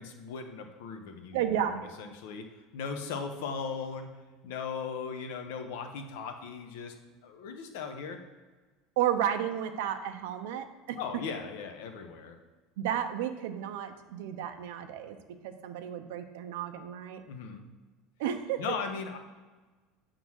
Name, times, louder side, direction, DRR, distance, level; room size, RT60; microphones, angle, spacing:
voice 1, 0.0-1.4 1.7-4.1 4.4-6.9 7.2-8.2 11.0-12.4 17.3-17.6 18.6-19.2, left 5 dB, 75° left, 6 dB, 0.9 m, -38 dB
voice 2, 1.3-1.8 9.0-11.0 12.8-15.2 15.4-17.2 18.2-18.6, right 10 dB, 80° right, 6 dB, 0.7 m, -32 dB
8.9 x 3.8 x 6.2 m, 1.3 s
cardioid pair, 175°, 0 cm